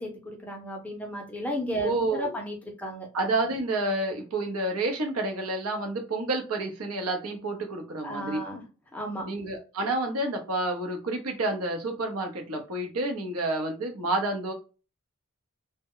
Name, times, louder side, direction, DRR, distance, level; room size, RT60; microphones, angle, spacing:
voice 1, 0.0-3.1 8.0-8.6 8.9-9.3, equal, 5° left, 2 dB, 0.5 m, -34 dB
voice 2, 1.8-2.3 3.1-8.4 9.3-14.5, right 2 dB, 85° right, 3 dB, 0.7 m, -29 dB
2.1 x 2.0 x 3.7 m, 0.33 s
head